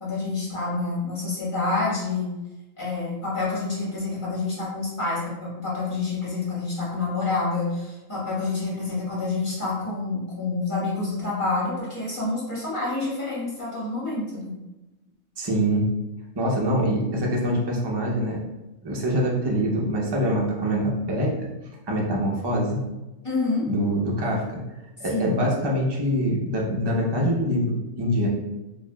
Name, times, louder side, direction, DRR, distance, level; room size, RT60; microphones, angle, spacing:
voice 1, 0.0-2.3 2.8-14.5 23.2-23.7 25.0-25.3, left 3 dB, 25° left, -7 dB, 1.2 m, -28 dB
voice 2, 15.4-15.8 16.4-18.4 18.8-21.3 21.9-22.8 23.7-24.4 25.0-28.3, equal, 30° right, -2 dB, 0.4 m, -24 dB
4.5 x 2.5 x 2.2 m, 1.0 s
omnidirectional pair, 1.4 m